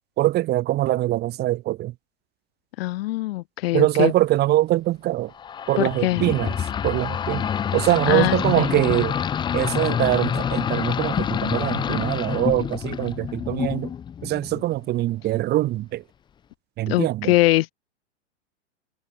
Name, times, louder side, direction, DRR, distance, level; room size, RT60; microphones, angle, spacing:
voice 1, 0.2-1.9 3.7-5.3 5.7-6.6 6.8-7.5 7.7-9.2 9.5-13.9 14.2-16.0 16.8-17.3, right 15 dB, 30° right, 1.3 m, -23 dB
voice 2, 2.8-4.1 5.8-6.2 8.1-8.8 16.9-17.7, left 18 dB, 55° left, 0.5 m, -22 dB
sound 1, 5.4-14.7, left 8 dB, 15° left, 0.7 m, -27 dB
hypercardioid pair, 135°, 35 cm